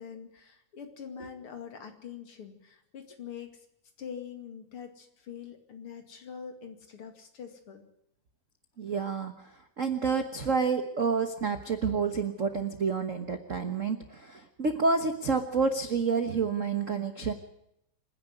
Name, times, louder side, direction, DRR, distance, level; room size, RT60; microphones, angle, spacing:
voice 1, 0.0-3.6 4.0-7.8, left 7 dB, 50° left, 6 dB, 3.0 m, -44 dB
voice 2, 8.8-9.5 9.8-17.3, right 5 dB, 50° right, 7 dB, 0.9 m, -29 dB
26.5 x 10.5 x 9.8 m, 0.80 s
omnidirectional pair, 3.3 m